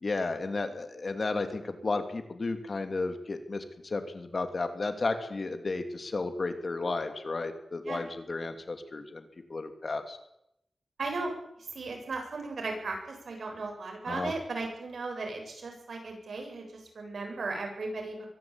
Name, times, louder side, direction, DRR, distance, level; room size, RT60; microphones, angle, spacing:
voice 1, 0.0-9.2 9.5-10.2 14.1-14.3, left 3 dB, 50° left, 8 dB, 2.9 m, -33 dB
voice 2, 11.0-11.3 11.6-18.3, right 3 dB, 80° right, 2 dB, 7.8 m, -36 dB
23.0 x 15.0 x 8.9 m, 0.80 s
wide cardioid pair, 95°, 0 cm